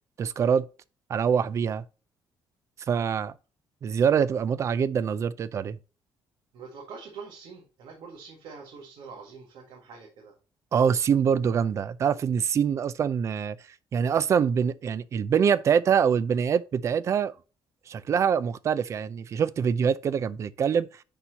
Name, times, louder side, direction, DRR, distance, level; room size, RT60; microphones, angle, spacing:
voice 1, 0.2-0.7 1.1-1.8 2.9-3.3 3.8-5.8 10.7-13.6 13.9-17.3 17.9-20.9, right 7 dB, 35° right, 0.4 m, -24 dB
voice 2, 6.5-10.3, right 5 dB, 75° right, 1.9 m, -44 dB
10.0 x 4.2 x 2.8 m
cardioid pair, 170°, 8 cm